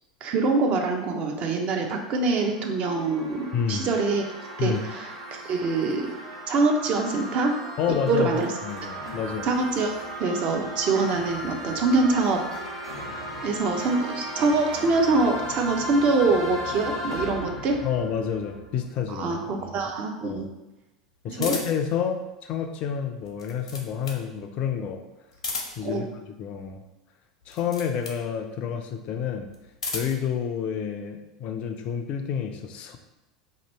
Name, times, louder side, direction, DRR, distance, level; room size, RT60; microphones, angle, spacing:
voice 1, 0.2-4.3 4.6-5.1 5.5-6.0 6.5-7.6 8.1-8.5 9.4-9.9 10.2-12.4 13.4-17.8 19.1-20.4 21.3-21.5 25.8-26.0, right 3 dB, 40° right, 3 dB, 0.6 m, -24 dB
sound 1, 2.1-19.0, equal, 75° right, 1.0 m, -36 dB
voice 2, 3.5-3.9 4.6-4.8 7.8-8.3 8.6-9.5 17.8-19.9 20.2-20.5 21.2-25.0 25.8-26.8 27.5-29.5 29.9-33.0, left 7 dB, 40° left, 5 dB, 0.3 m, -29 dB
sound 2, 21.4-21.9 23.2-24.3 25.3-26.0 27.4-28.2 29.5-30.3, left 3 dB, 75° left, 0.7 m, -34 dB
2.8 x 2.6 x 4.2 m, 0.99 s
figure-of-eight pair, 80°, 3 cm